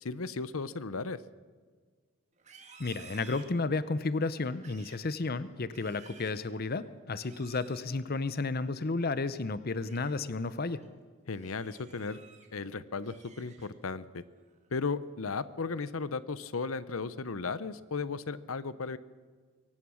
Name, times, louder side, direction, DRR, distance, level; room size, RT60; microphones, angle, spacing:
voice 1, 0.0-1.2 11.3-12.2 12.5-14.2 14.7-19.0, left 4 dB, 85° left, 16 dB, 0.8 m, -35 dB
Livestock farm animals working animals, 2.3-4.0 4.5-5.1 5.5-6.5 7.2-7.9 9.6-10.2 10.6-10.9 11.3-12.5 12.9-13.9 14.3-14.7 15.1-15.5, right 5 dB, 35° right, 2.3 m, -55 dB
voice 2, 2.8-10.8, left 3 dB, 45° left, 14 dB, 0.7 m, -32 dB
23.0 x 18.5 x 6.4 m, 1.5 s
head